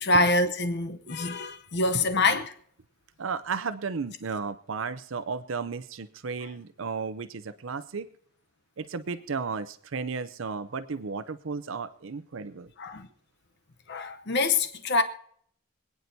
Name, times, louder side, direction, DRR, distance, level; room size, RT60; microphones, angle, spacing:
voice 1, 0.0-2.5 12.8-13.1 13.9-15.0, left 2 dB, 55° left, 0.8 m, -25 dB
voice 2, 3.2-8.1 8.8-12.7, right 5 dB, 70° right, 0.6 m, -34 dB
26.5 x 9.4 x 2.7 m
head